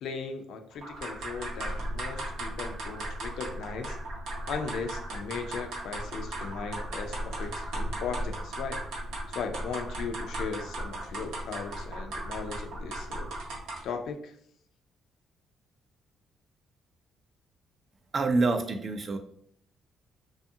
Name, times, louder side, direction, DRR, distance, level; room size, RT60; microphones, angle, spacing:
voice 1, 0.0-4.0 4.5-8.8 9.3-13.3 13.8-14.4, left 5 dB, 75° left, 6 dB, 0.3 m, -37 dB
sound 1, 0.8-14.0, right 1 dB, 85° right, 0.7 m, -36 dB
voice 2, 18.1-19.2, right 3 dB, 40° right, 7 dB, 0.4 m, -26 dB
2.6 x 2.3 x 2.6 m, 0.62 s
cardioid pair, 95°, 0 cm